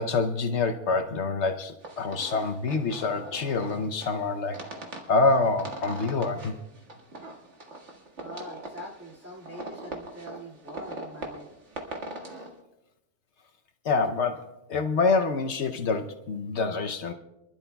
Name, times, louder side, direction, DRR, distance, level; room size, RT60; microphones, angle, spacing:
voice 1, 0.0-4.6 5.1-6.5 13.8-17.1, left 3 dB, 70° left, 7 dB, 1.0 m, -26 dB
sound 1, 1.8-12.5, right 2 dB, 75° right, 1.9 m, -41 dB
voice 2, 8.2-11.5, equal, 10° right, -2 dB, 2.2 m, -43 dB
27.0 x 12.0 x 2.3 m, 0.93 s
omnidirectional pair, 1.2 m